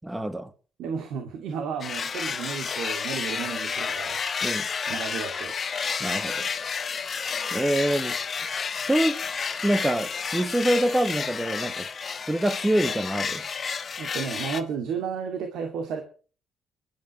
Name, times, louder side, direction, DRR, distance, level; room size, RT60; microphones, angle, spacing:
voice 1, 0.0-0.5 4.4-4.7 6.0-6.5 7.5-8.2 8.9-9.2 9.6-11.9 12.3-13.4, right 1 dB, 10° right, 1.5 m, -25 dB
voice 2, 0.8-4.5 4.9-5.5 14.0-16.0, right 6 dB, 85° right, 2.2 m, -33 dB
sound 1, 1.8-14.6, left 6 dB, 40° left, 1.4 m, -31 dB
23.0 x 11.5 x 3.1 m
cardioid pair, 90°, 0 cm